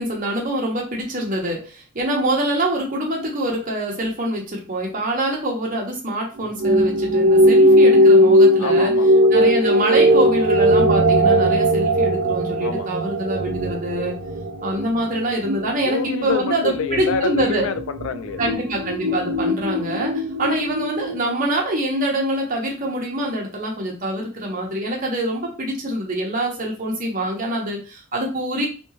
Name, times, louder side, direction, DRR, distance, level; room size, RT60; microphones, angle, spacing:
voice 1, 0.0-8.9 9.3-14.1 14.6-17.6 18.4-28.7, right 1 dB, 40° right, 1.1 m, -25 dB
sound 1, 6.6-21.2, equal, 75° right, 0.5 m, -18 dB
voice 2, 8.6-10.2 12.6-12.9 15.6-18.4, left 5 dB, 80° left, 0.4 m, -28 dB
3.5 x 2.9 x 2.9 m
head